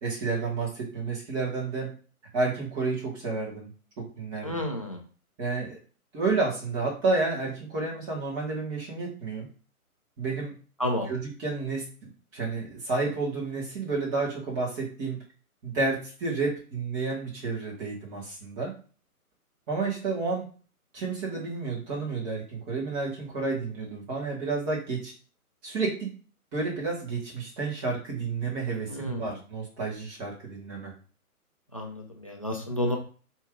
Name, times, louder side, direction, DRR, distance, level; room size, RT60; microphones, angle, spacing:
voice 1, 0.0-1.9 2.3-3.7 4.0-4.6 5.4-5.8 6.1-9.5 10.2-10.5 11.1-15.2 15.6-18.7 19.7-20.4 20.9-25.1 25.6-26.1 26.5-30.9, right 3 dB, 20° right, -3 dB, 1.4 m, -30 dB
voice 2, 4.4-5.0 10.8-11.1 28.9-29.4 31.7-33.0, left 1 dB, 25° left, 2 dB, 0.4 m, -31 dB
4.5 x 2.7 x 3.6 m, 0.39 s
hypercardioid pair, 145°, 45 cm